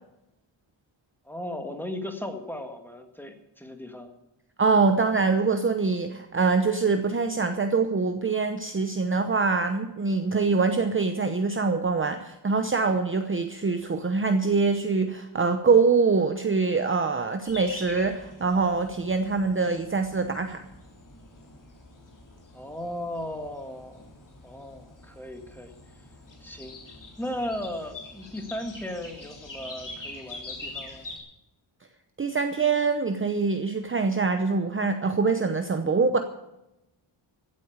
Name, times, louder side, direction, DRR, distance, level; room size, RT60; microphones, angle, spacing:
voice 1, 1.3-4.1 22.5-25.7 26.4-26.8 27.2-31.1, left 1 dB, 5° left, 5 dB, 2.0 m, -36 dB
voice 2, 4.6-20.6 32.2-36.2, right 4 dB, 25° right, 7 dB, 0.9 m, -24 dB
sound 1, 17.5-31.2, left 2 dB, 40° left, 3.4 m, -44 dB
16.0 x 8.6 x 8.0 m, 0.91 s
wide cardioid pair, 145°, 49 cm